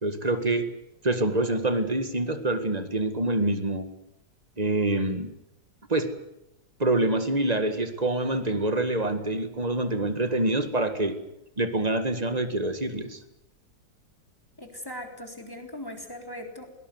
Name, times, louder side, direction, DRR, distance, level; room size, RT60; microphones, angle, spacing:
voice 1, 0.0-0.7 1.0-3.9 4.6-5.3 5.9-6.1 6.8-11.1 11.6-13.2, right 2 dB, 20° right, 9 dB, 1.9 m, -26 dB
voice 2, 14.6-16.7, left 1 dB, 10° left, 3 dB, 3.8 m, -39 dB
21.5 x 19.0 x 9.6 m, 0.83 s
omnidirectional pair, 1.9 m